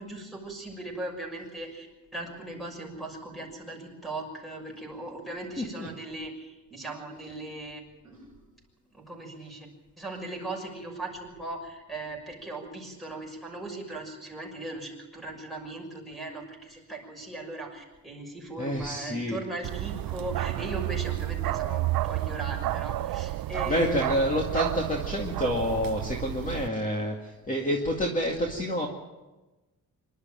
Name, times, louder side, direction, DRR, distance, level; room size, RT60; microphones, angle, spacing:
voice 1, 0.0-1.9 2.1-8.4 8.9-9.7 10.0-24.0, right 2 dB, ahead, 2 dB, 6.4 m, -38 dB
voice 2, 5.6-5.9 18.6-19.4 23.7-28.9, equal, 25° left, 1 dB, 2.2 m, -28 dB
Bark, 19.6-26.7, right 15 dB, 85° right, 0.6 m, -31 dB
26.0 x 12.0 x 9.1 m, 1.1 s
wide cardioid pair, 155°, 34 cm